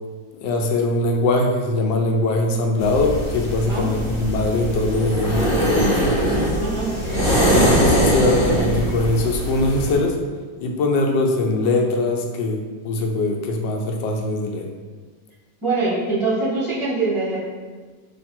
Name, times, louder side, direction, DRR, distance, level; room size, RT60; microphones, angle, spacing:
voice 1, 0.4-6.2 7.5-10.2 10.6-14.7, left 2 dB, 85° left, 2 dB, 1.2 m, -21 dB
sound 1, 2.8-10.0, equal, 35° left, 1.1 m, -21 dB
voice 2, 3.7-4.0 6.6-6.9 15.6-17.4, right 3 dB, 25° right, -11 dB, 0.7 m, -23 dB
3.2 x 2.5 x 4.3 m, 1.4 s
omnidirectional pair, 1.9 m